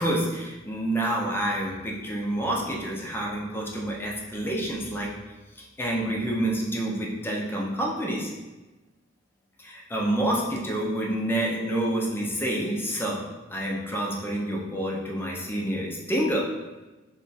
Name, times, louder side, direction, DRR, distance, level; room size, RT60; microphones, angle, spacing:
voice 1, 0.0-5.1 5.8-8.3 9.6-13.3 13.5-16.5, right 1 dB, 10° left, -2 dB, 0.5 m, -28 dB
3.0 x 2.3 x 4.0 m, 1.1 s
head